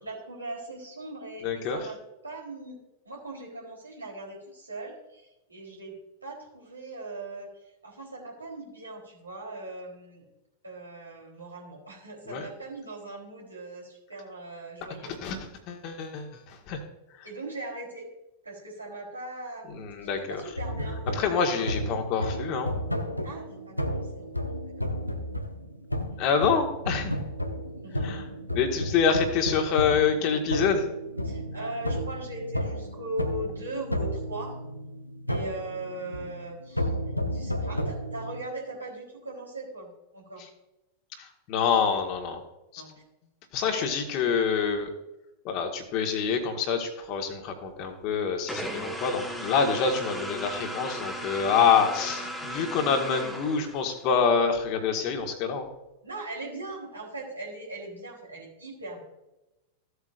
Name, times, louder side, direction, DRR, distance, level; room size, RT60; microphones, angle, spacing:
voice 1, 0.0-2.0 2.2-2.8 3.1-5.9 6.2-7.5 7.8-10.2 10.6-15.1 17.2-18.0 18.4-22.0 23.2-24.7 26.1-26.3 27.8-28.1 31.2-34.5 35.3-36.9 37.3-40.5 42.8-42.9 43.6-43.9 56.0-59.0, right 2 dB, 80° right, -3 dB, 3.6 m, -40 dB
voice 2, 1.4-1.9 12.3-12.5 15.2-15.4 15.7-16.8 17.2-17.3 19.7-20.4 21.1-22.7 26.2-27.2 28.0-30.9 41.2-42.4 42.7-42.8 43.5-44.9 45.4-55.7, left 6 dB, 40° left, 5 dB, 1.6 m, -26 dB
sound 1, 20.6-38.4, equal, 90° left, 0.8 m, -33 dB
sound 2, 48.5-54.1, equal, 5° left, 1.4 m, -36 dB
15.5 x 8.0 x 2.6 m, 0.97 s
figure-of-eight pair, 90°, 0 cm